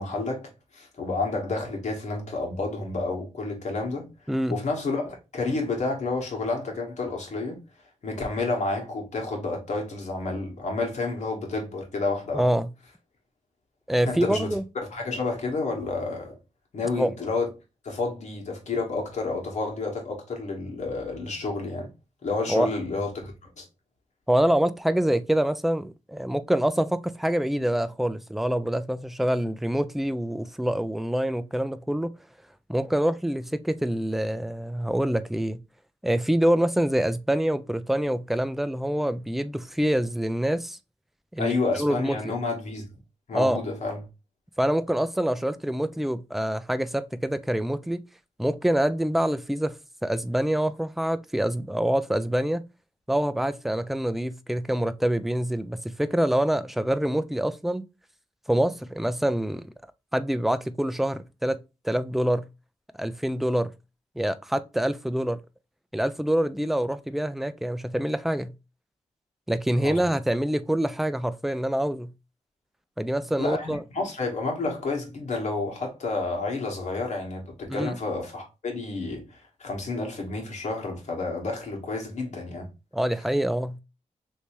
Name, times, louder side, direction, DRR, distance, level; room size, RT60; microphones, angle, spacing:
voice 1, 0.0-4.1 4.5-7.6 8.0-12.5 14.0-14.5 14.9-16.4 16.7-17.5 17.8-21.9 22.2-23.7 41.4-42.8 43.3-44.0 69.8-70.0 73.4-82.7, left 3 dB, 75° left, 1.2 m, -30 dB
voice 2, 12.3-12.7 13.9-14.7 17.0-17.1 22.5-22.7 24.3-32.1 32.7-35.6 36.0-40.8 41.3-42.3 43.3-43.6 44.6-48.0 48.4-49.7 50.0-52.6 53.1-57.8 58.5-59.7 60.1-61.6 61.8-62.5 63.0-63.7 64.2-65.4 65.9-68.5 69.5-72.1 73.0-73.8 77.7-78.0 82.9-83.8, right 1 dB, ahead, 0.3 m, -26 dB
3.3 x 2.7 x 3.0 m
wide cardioid pair, 90°, 12 cm